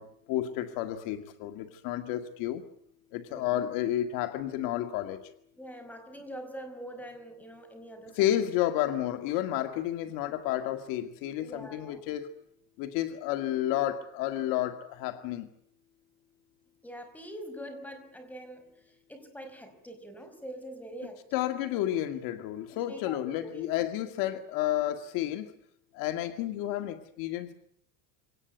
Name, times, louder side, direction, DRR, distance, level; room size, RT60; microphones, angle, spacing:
voice 1, 0.0-2.6 3.1-5.3 8.1-12.3 12.8-15.5 21.3-25.5 25.9-27.5, left 12 dB, 55° left, 8 dB, 1.9 m, -31 dB
voice 2, 3.3-3.7 5.6-8.2 11.4-12.0 16.8-18.8 19.1-21.4 22.9-23.9, right 1 dB, 5° left, 7 dB, 5.2 m, -44 dB
25.5 x 19.0 x 9.3 m, 0.73 s
supercardioid pair, 145°, 40 cm